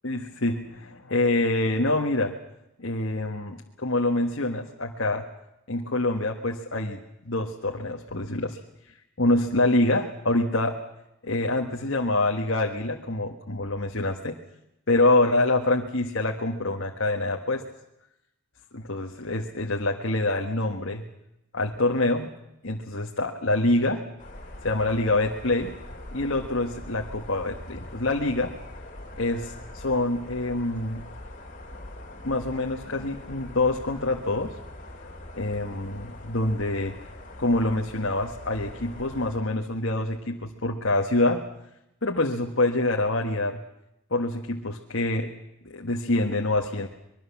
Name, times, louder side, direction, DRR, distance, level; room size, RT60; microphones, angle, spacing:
voice 1, 0.0-2.3 2.8-5.2 5.7-8.6 9.2-10.8 11.2-14.4 14.9-17.6 18.7-21.0 21.5-22.3 22.6-24.0 24.6-25.7 26.1-28.5 29.2-31.0 32.2-34.5 35.4-37.0 37.4-41.4 42.0-43.6 44.1-45.3 45.6-46.9, left 2 dB, 55° left, 1 dB, 1.5 m, -26 dB
sound 1, 24.2-39.4, left 1 dB, 35° left, 2.8 m, -42 dB
24.5 x 22.0 x 7.2 m, 0.87 s
head